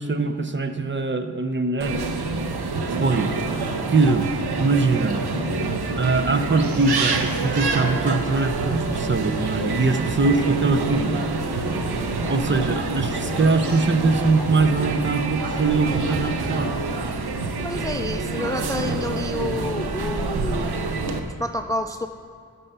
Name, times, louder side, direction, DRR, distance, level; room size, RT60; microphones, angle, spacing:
voice 1, 0.0-2.0 3.0-4.3 4.6-5.2 5.9-11.2 11.7-11.8 12.3-16.8, right 3 dB, 30° right, 9 dB, 0.6 m, -22 dB
sound 1, 1.8-21.2, right 3 dB, 85° right, 0.8 m, -26 dB
sound 2, 6.5-7.5 9.0-9.3 9.7-10.1 11.1-11.2 13.5-13.8, right 4 dB, 65° right, 1.2 m, -45 dB
sound 3, 10.4-16.1, left 6 dB, 65° left, 0.7 m, -42 dB
voice 2, 17.6-20.9 21.2-22.1, left 1 dB, 10° left, 7 dB, 0.3 m, -29 dB
11.0 x 5.6 x 6.8 m, 2.4 s
wide cardioid pair, 85°, 38 cm